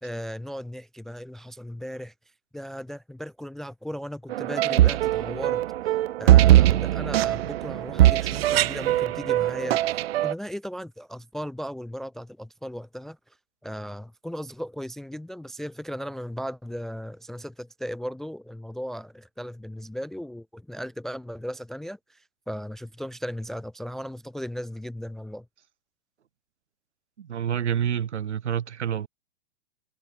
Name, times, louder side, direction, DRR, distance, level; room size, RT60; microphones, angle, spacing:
voice 1, 0.0-2.1 2.5-13.4 13.6-25.5, equal, ahead, 0.5 m, -37 dB
sound 1, 4.3-10.3, right 14 dB, 60° right, 0.5 m, -21 dB
voice 2, 27.2-29.1, right 9 dB, 80° right, 5.3 m, -28 dB
hypercardioid pair, 155°, 34 cm